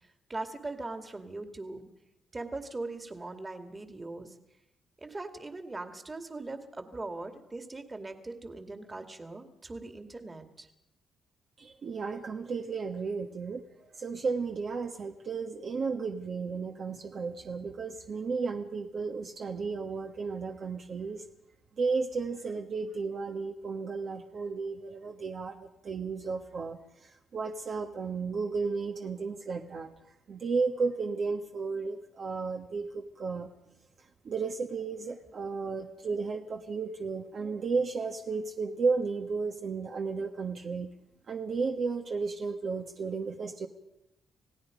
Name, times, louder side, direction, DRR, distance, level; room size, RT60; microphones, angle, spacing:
voice 1, 0.0-1.9 2.3-4.3 5.0-10.7, right 2 dB, 20° right, 7 dB, 2.3 m, -40 dB
voice 2, 11.6-21.2 21.8-29.9 30.3-33.5 34.2-40.9 41.3-43.7, right 4 dB, 50° right, 3 dB, 1.4 m, -33 dB
28.0 x 17.5 x 5.2 m, 0.83 s
cardioid pair, 120°, 0 cm